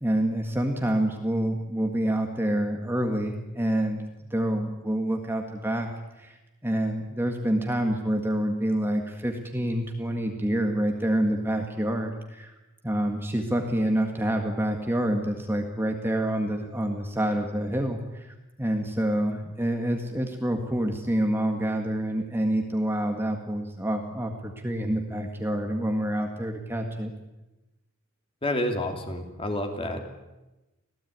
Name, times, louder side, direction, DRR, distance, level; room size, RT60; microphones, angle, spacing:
voice 1, 0.0-4.0 4.3-5.9 6.2-12.5 12.8-27.1, right 1 dB, 10° right, 3 dB, 1.8 m, -27 dB
voice 2, 28.4-30.0, left 1 dB, 25° left, 5 dB, 3.1 m, -29 dB
26.0 x 16.5 x 9.5 m, 1.0 s
head